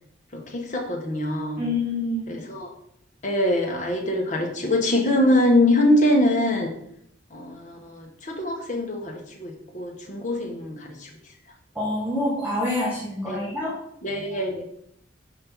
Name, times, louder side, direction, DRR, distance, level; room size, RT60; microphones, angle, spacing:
voice 1, 0.3-1.6 2.3-2.7 3.2-6.7 7.3-11.1 13.3-13.5 14.0-14.7, left 1 dB, 40° left, 1 dB, 1.3 m, -23 dB
voice 2, 1.6-2.2 11.7-13.8, left 2 dB, 10° right, -6 dB, 1.7 m, -26 dB
6.0 x 5.3 x 5.5 m, 0.71 s
head